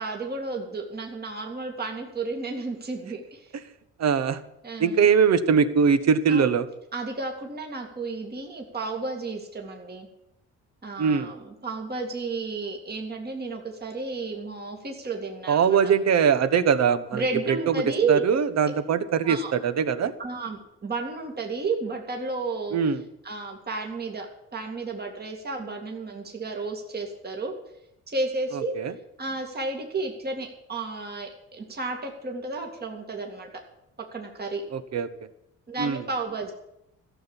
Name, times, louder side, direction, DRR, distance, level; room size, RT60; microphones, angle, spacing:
voice 1, 0.0-3.5 4.6-5.1 6.3-6.5 6.9-10.1 10.8-15.8 17.1-18.2 19.2-19.5 20.2-22.8 23.2-24.3 24.5-27.5 28.1-28.7 29.2-33.5 34.1-34.6 35.7-36.5, right 3 dB, 30° right, 2 dB, 2.4 m, -32 dB
voice 2, 4.0-4.4 4.8-6.7 11.0-11.3 15.5-17.8 18.1-20.1 22.7-23.0 28.5-28.9 34.7-35.1 35.8-36.0, right 6 dB, 60° right, 12 dB, 1.2 m, -22 dB
14.0 x 7.2 x 10.0 m, 0.84 s
cardioid pair, 90°, 30 cm